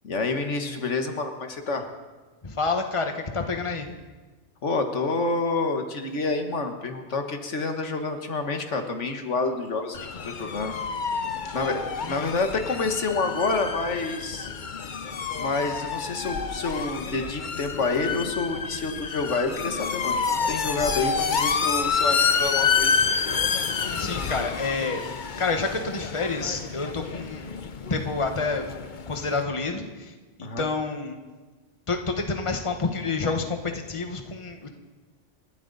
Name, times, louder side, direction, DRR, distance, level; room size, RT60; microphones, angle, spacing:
voice 1, 0.0-1.9 4.6-10.8 11.0-11.1 11.5-14.5 15.3-23.0 30.4-30.7, left 3 dB, 80° left, 5 dB, 1.7 m, -28 dB
voice 2, 2.4-3.9 12.1-12.2 23.9-25.0 25.4-27.6 27.9-28.7 29.1-30.1 30.4-31.2 31.9-34.7, left 4 dB, 25° left, 5 dB, 1.4 m, -28 dB
sound 1, 9.9-29.4, left 5 dB, 45° left, 0.9 m, -29 dB
28.0 x 12.5 x 4.0 m, 1.3 s
omnidirectional pair, 1.2 m